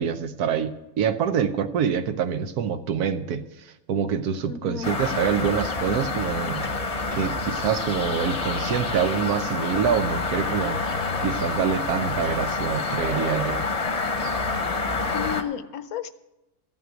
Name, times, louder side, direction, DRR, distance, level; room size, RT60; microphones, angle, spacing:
voice 1, 0.0-3.5 3.9-6.7 7.1-10.9 11.2-13.7, right 7 dB, 90° right, 10 dB, 1.3 m, -26 dB
voice 2, 4.5-4.9 15.1-16.1, left 8 dB, 75° left, 12 dB, 1.2 m, -32 dB
sound 1, 4.8-15.4, left 3 dB, 30° left, 0.8 m, -27 dB
14.0 x 6.0 x 9.0 m, 0.95 s
omnidirectional pair, 1.6 m